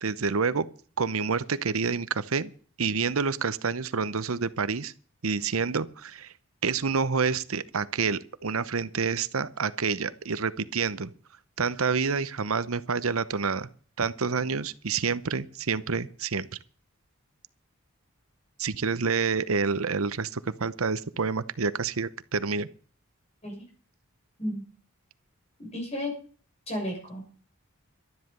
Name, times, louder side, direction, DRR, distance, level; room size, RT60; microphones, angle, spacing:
voice 1, 0.0-0.7 1.0-2.5 2.8-4.9 5.2-6.3 6.6-11.1 11.6-13.7 14.0-16.5 18.6-22.7, right 5 dB, 90° right, 0.9 m, -28 dB
voice 2, 25.6-26.1 26.7-27.2, left 1 dB, 30° left, 6.7 m, -33 dB
12.5 x 11.0 x 6.8 m
head